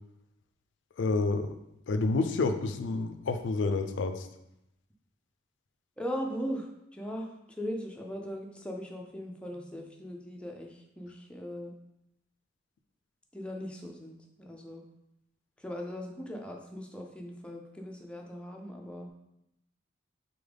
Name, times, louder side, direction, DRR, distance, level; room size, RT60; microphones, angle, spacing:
voice 1, 1.0-1.5 1.9-4.3, left 3 dB, 70° left, 8 dB, 0.4 m, -29 dB
voice 2, 6.0-11.8 13.3-14.8 15.6-19.1, equal, 5° left, 0 dB, 0.5 m, -39 dB
3.9 x 3.6 x 3.4 m, 0.83 s
head